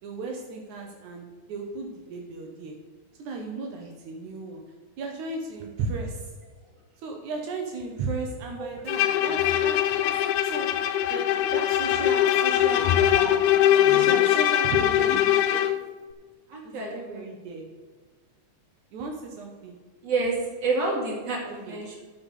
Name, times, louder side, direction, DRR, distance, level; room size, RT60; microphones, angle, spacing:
voice 1, 0.0-2.9 3.2-4.6 5.0-6.3 7.0-13.5 13.9-15.8 16.6-17.7 18.9-19.8 21.4-21.8, right 3 dB, 75° right, 2 dB, 2.5 m, -36 dB
Bowed string instrument, 8.9-15.8, left 11 dB, 85° left, 2.0 m, -22 dB
voice 2, 16.5-17.2 20.0-22.0, right 3 dB, 35° right, -2 dB, 3.0 m, -29 dB
13.0 x 5.3 x 6.5 m, 1.4 s
omnidirectional pair, 3.4 m